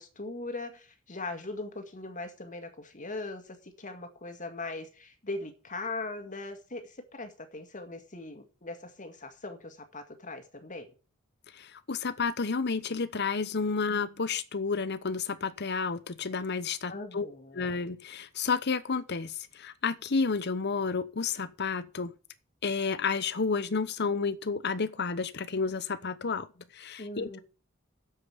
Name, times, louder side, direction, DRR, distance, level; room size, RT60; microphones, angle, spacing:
voice 1, 0.0-10.9 16.9-17.7 27.0-27.4, left 2 dB, 40° left, 2.0 m, -40 dB
voice 2, 11.6-17.3 17.5-22.1 22.6-26.5 26.7-27.4, left 4 dB, 55° left, 0.9 m, -31 dB
8.1 x 7.6 x 8.5 m
head